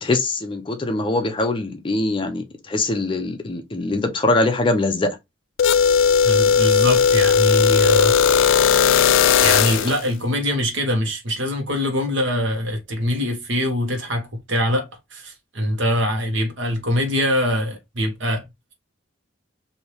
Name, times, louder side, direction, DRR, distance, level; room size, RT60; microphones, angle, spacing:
voice 1, 0.0-5.2, left 2 dB, 25° left, 0.5 m, -22 dB
sound 1, 5.6-10.0, left 7 dB, 85° left, 0.3 m, -16 dB
voice 2, 6.2-8.2 9.4-18.4, equal, 70° right, 1.2 m, -23 dB
3.3 x 2.7 x 2.9 m
head